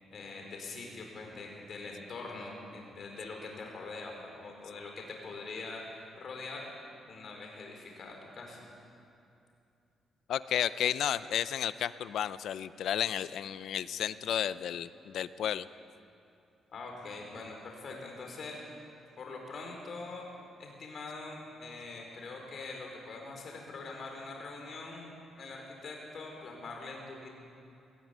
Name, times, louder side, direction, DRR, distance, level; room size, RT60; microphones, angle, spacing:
voice 1, 0.1-6.7 7.1-8.6 16.7-18.6 19.2-20.3 20.6-27.3, left 3 dB, 40° left, 1 dB, 4.6 m, -43 dB
voice 2, 10.3-15.7, left 10 dB, 65° left, 15 dB, 0.6 m, -32 dB
19.5 x 18.5 x 9.5 m, 2.6 s
cardioid pair, 175°, 0 cm